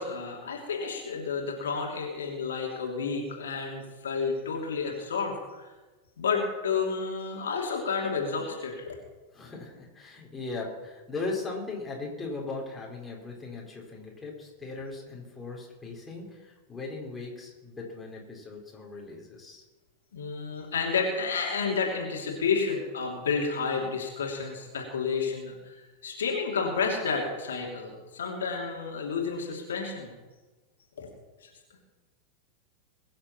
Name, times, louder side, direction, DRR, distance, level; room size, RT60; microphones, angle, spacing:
voice 1, 0.0-5.7 6.2-9.0 20.1-25.7 26.0-30.1 31.0-31.1, left 5 dB, 65° left, -1 dB, 3.1 m, -30 dB
voice 2, 9.3-19.6, left 3 dB, 10° left, -2 dB, 4.1 m, -38 dB
22.5 x 7.7 x 5.8 m, 1.2 s
figure-of-eight pair, 90°, 0 cm